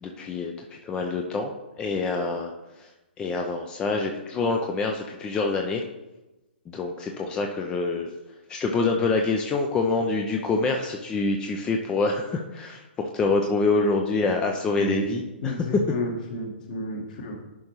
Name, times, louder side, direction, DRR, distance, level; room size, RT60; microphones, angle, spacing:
voice 1, 0.0-1.5 1.8-2.5 2.8-2.9 3.2-5.8 6.7-8.1 8.5-15.5, left 3 dB, 15° left, 2 dB, 0.5 m, -26 dB
voice 2, 14.7-15.1 15.4-17.4, equal, 45° left, 1 dB, 1.5 m, -31 dB
10.5 x 5.2 x 3.0 m, 1.0 s
figure-of-eight pair, 120°, 6 cm